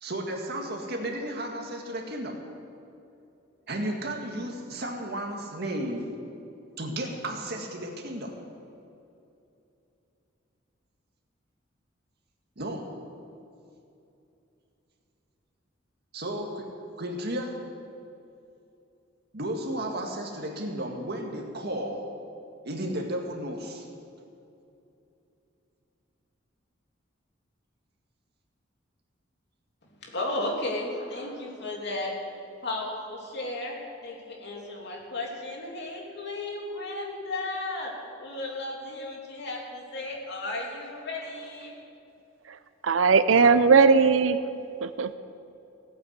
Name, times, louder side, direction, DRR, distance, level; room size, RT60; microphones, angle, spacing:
voice 1, 0.0-2.4 3.7-6.1 6.8-8.4 12.6-12.9 16.1-16.7 17.0-17.6 19.3-22.1 22.6-23.9, right 1 dB, 55° right, 2 dB, 2.0 m, -33 dB
voice 2, 30.0-32.1 32.6-37.9 38.2-41.7, left 2 dB, 60° left, -1 dB, 2.9 m, -34 dB
voice 3, 42.8-44.4 44.8-45.1, right 5 dB, 80° right, 13 dB, 0.6 m, -19 dB
17.0 x 8.9 x 8.1 m, 2.7 s
head